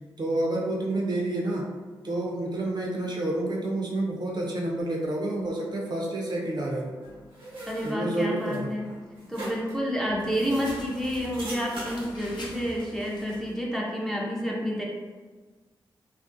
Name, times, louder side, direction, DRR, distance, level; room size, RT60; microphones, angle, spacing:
voice 1, 0.2-1.7 2.0-7.0 7.8-8.6, right 1 dB, 45° right, -2 dB, 0.6 m, -29 dB
sound 1, 7.0-12.0, right 1 dB, 90° right, 0.8 m, -42 dB
voice 2, 7.7-14.8, equal, 5° left, -3 dB, 0.5 m, -29 dB
sound 2, 10.0-13.5, left 1 dB, 50° left, 0.6 m, -44 dB
2.4 x 2.0 x 2.5 m, 1.4 s
supercardioid pair, 45°, 10 cm